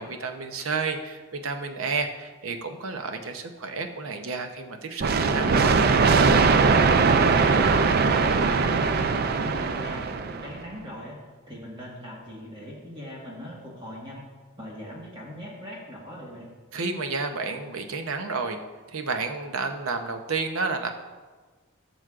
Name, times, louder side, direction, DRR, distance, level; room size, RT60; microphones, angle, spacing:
voice 1, 0.0-5.7 16.7-18.6 18.9-20.9, right 4 dB, 80° right, 6 dB, 0.7 m, -31 dB
sound 1, 5.0-10.6, right 4 dB, 45° right, 0.4 m, -21 dB
voice 2, 7.2-8.1 8.4-9.1 9.4-11.2 11.5-14.3 14.6-16.5, equal, 20° right, -4 dB, 1.5 m, -40 dB
13.5 x 6.2 x 2.5 m, 1.4 s
head